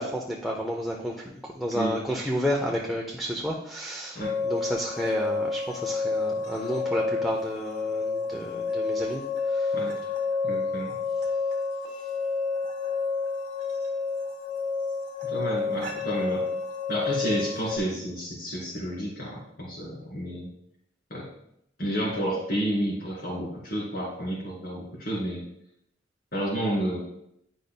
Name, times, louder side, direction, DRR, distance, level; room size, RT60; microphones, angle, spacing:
voice 1, 0.0-1.3 1.6-9.2 9.5-9.8, equal, ahead, -2 dB, 0.6 m, -31 dB
sound 1, 4.2-17.8, left 4 dB, 45° right, 1.4 m, -29 dB
voice 2, 10.4-11.0 15.2-16.4 16.9-20.5 21.1-21.3 21.8-25.4 26.3-27.0, equal, 55° left, -4 dB, 2.4 m, -30 dB
10.0 x 5.2 x 2.2 m, 0.75 s
head